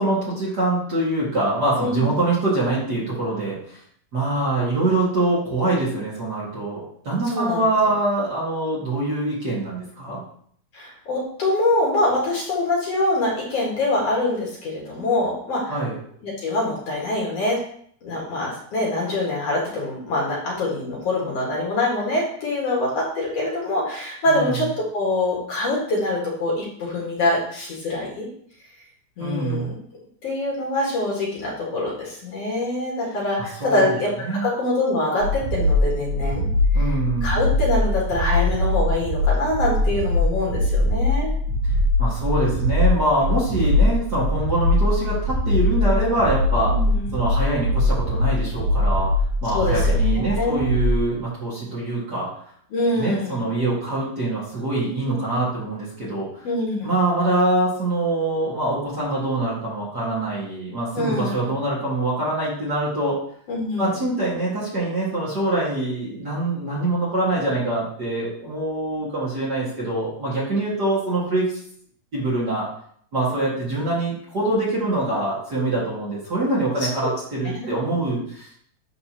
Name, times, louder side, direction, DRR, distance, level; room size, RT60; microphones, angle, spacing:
voice 1, 0.0-3.8 4.1-10.2 15.7-16.0 24.3-24.6 29.2-29.7 33.4-34.0 34.2-34.5 36.7-37.3 42.0-46.7 47.1-49.1 49.4-52.3 52.9-56.3 56.8-63.2 63.8-71.5 72.1-72.7 73.1-78.5, right 2 dB, 35° right, -8 dB, 2.3 m, -24 dB
voice 2, 7.3-7.6 10.7-15.7 16.2-17.6 18.0-28.3 29.2-29.7 30.2-36.5 37.2-41.3 46.7-47.1 49.5-50.6 52.7-53.4 56.4-56.9 60.9-61.3 63.5-64.0 77.0-77.1 77.5-77.7, left 2 dB, 55° left, -3 dB, 2.8 m, -24 dB
sound 1, 35.2-51.0, left 1 dB, 65° right, 1.7 m, -21 dB
11.0 x 4.2 x 3.0 m, 0.62 s
omnidirectional pair, 3.5 m